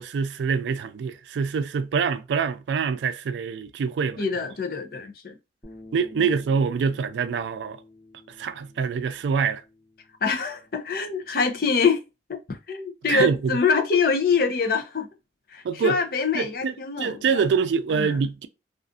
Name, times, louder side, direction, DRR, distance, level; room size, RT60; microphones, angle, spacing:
voice 1, 0.0-4.2 5.9-7.8 8.4-9.6 13.1-13.6 15.6-16.0 16.3-18.5, right 6 dB, 90° right, 0.3 m, -25 dB
voice 2, 4.2-5.4 6.2-6.3 10.2-12.0 12.3-15.1 15.5-17.4 17.9-18.2, left 5 dB, 55° left, 0.5 m, -25 dB
sound 1, 5.6-11.9, left 2 dB, 20° left, 0.9 m, -50 dB
2.4 x 2.4 x 2.4 m
head